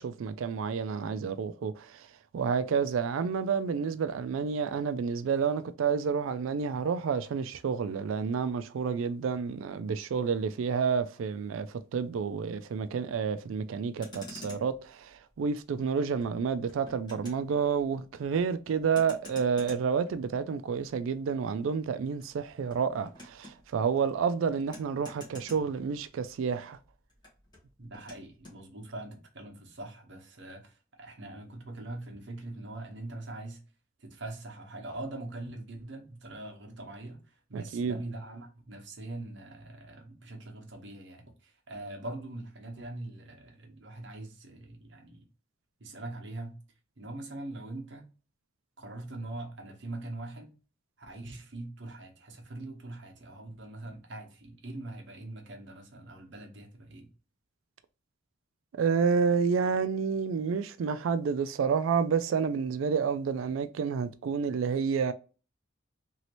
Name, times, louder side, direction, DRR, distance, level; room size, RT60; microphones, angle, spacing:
voice 1, 0.0-2.1 2.3-26.8 37.5-38.0 58.8-65.1, right 6 dB, 75° right, 0.3 m, -29 dB
Motor vehicle (road), 13.9-26.4 26.7-28.6, left 1 dB, 20° left, 1.2 m, -51 dB
voice 2, 27.8-33.6 34.0-45.3 45.8-46.6 47.0-48.1 48.8-50.5 51.0-57.1, right 2 dB, 60° right, 0.9 m, -42 dB
3.0 x 2.8 x 2.9 m
head